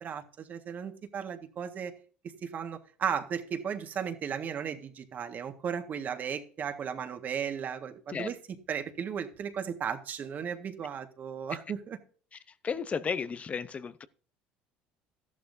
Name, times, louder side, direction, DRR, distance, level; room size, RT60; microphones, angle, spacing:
voice 1, 0.0-1.9 2.2-12.0, right 7 dB, 45° right, 1.7 m, -35 dB
voice 2, 12.6-14.1, left 6 dB, 35° left, 0.8 m, -33 dB
13.5 x 11.5 x 2.7 m
supercardioid pair, 90°, 4 cm